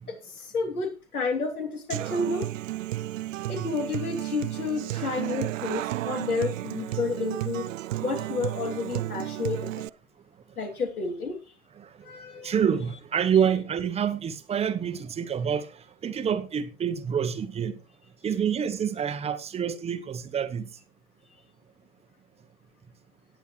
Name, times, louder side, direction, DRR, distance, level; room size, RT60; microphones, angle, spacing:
voice 1, 0.1-2.5 3.5-7.7 8.0-9.9 10.6-11.4 12.0-12.5, left 4 dB, 85° left, 3.2 m, -31 dB
Human voice / Acoustic guitar, 1.9-9.9, right 15 dB, 65° right, 0.5 m, -33 dB
voice 2, 11.8-17.8 18.2-20.7, right 8 dB, 15° right, 0.9 m, -27 dB
18.0 x 8.2 x 3.2 m
hypercardioid pair, 115°, 43 cm